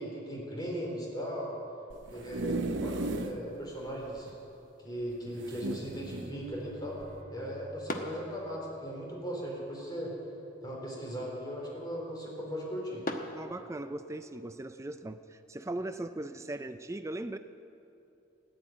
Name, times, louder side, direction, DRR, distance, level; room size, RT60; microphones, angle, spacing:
voice 1, 0.0-1.6 2.1-4.3 4.8-7.0 7.3-10.1 10.6-13.0, equal, 20° left, -2 dB, 3.8 m, -38 dB
sound 1, 1.9-3.4 3.9-4.0 4.2-4.3 5.4-6.3 7.0-7.2, right 2 dB, 65° right, 0.7 m, -35 dB
sound 2, 4.1-14.2, left 1 dB, 45° left, 1.2 m, -46 dB
Bowed string instrument, 5.1-9.6, right 1 dB, 35° right, 1.0 m, -52 dB
voice 2, 13.3-17.4, right 2 dB, 15° right, 10 dB, 0.4 m, -39 dB
15.0 x 10.5 x 9.0 m, 2.8 s
head